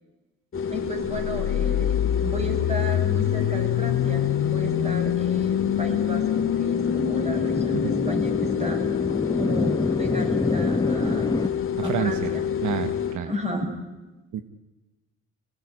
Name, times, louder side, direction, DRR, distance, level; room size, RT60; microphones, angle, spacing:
sound 1, 0.5-13.2, left 8 dB, 45° left, 2.4 m, -28 dB
voice 1, 0.7-1.9 2.2-8.9 9.4-11.4 11.8-12.4 13.3-13.7, equal, 20° right, 3 dB, 7.5 m, -34 dB
sound 2, 1.1-11.0, left 12 dB, 65° left, 0.8 m, -27 dB
sound 3, 3.8-11.5, left 2 dB, 15° left, 1.0 m, -28 dB
voice 2, 11.8-12.3 12.6-13.3 14.3-14.4, right 9 dB, 75° right, 10 dB, 1.5 m, -28 dB
26.0 x 17.5 x 9.7 m, 1.1 s
cardioid pair, 90°, 30 cm